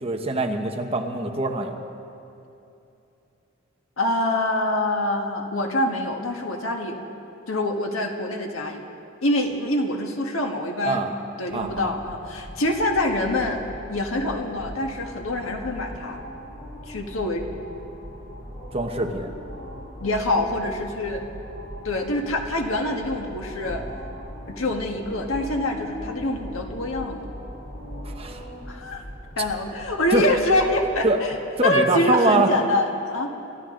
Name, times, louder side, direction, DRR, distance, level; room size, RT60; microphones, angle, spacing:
voice 1, 0.0-1.8 10.8-11.1 11.5-11.9 18.7-19.3 28.0-28.4 30.1-30.2 31.0-31.2 31.6-32.5, right 2 dB, 30° right, 3 dB, 1.1 m, -23 dB
voice 2, 4.0-7.0 7.5-8.8 9.2-11.1 11.4-13.6 13.9-16.2 16.9-17.4 20.0-21.2 21.8-23.8 24.5-27.2 28.7-29.0 29.4-31.3 31.6-33.3, left 1 dB, 80° left, 3 dB, 1.6 m, -25 dB
sound 1, 11.5-31.0, equal, 45° left, 2.8 m, -39 dB
26.0 x 13.0 x 3.9 m, 2.8 s
head